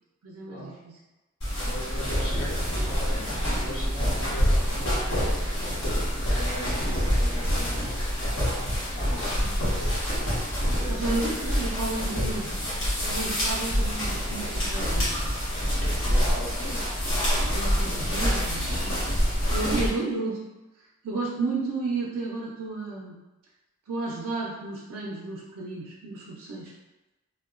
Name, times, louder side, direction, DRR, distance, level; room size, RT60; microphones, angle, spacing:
voice 1, 0.2-1.0 10.8-15.1 15.8-16.2 17.5-19.0 19.5-20.4 21.0-23.2 23.9-26.7, right 3 dB, 85° right, -4 dB, 0.4 m, -32 dB
sound 1, 1.4-19.9, equal, 65° left, 1.0 m, -26 dB
voice 2, 1.6-5.2 6.2-7.9 8.9-9.5 10.6-11.6 16.0-16.9, left 1 dB, 20° left, -10 dB, 0.9 m, -39 dB
2.8 x 2.1 x 2.4 m, 1.1 s
head